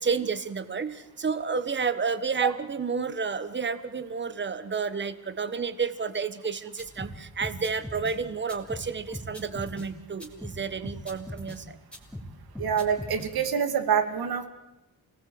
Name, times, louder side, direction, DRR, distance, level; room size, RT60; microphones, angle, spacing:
voice 1, 0.0-11.8, right 5 dB, 30° right, 12 dB, 1.3 m, -31 dB
sound 1, 6.8-8.2 8.5-9.9 10.2-11.6 11.9-13.3, equal, 5° left, 3.1 m, -40 dB
voice 2, 12.6-14.5, right 7 dB, 90° right, 7 dB, 2.3 m, -26 dB
29.0 x 19.0 x 7.8 m, 0.98 s
wide cardioid pair, 170°, 36 cm